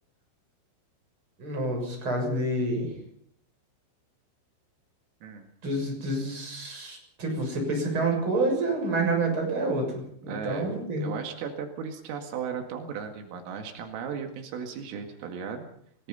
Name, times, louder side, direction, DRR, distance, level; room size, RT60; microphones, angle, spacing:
voice 1, 1.4-2.9 5.6-11.1, right 2 dB, 25° right, 2 dB, 7.4 m, -28 dB
voice 2, 10.3-10.7 11.0-15.7, right 6 dB, 85° right, 4 dB, 4.7 m, -36 dB
29.0 x 18.0 x 5.6 m, 0.67 s
omnidirectional pair, 5.8 m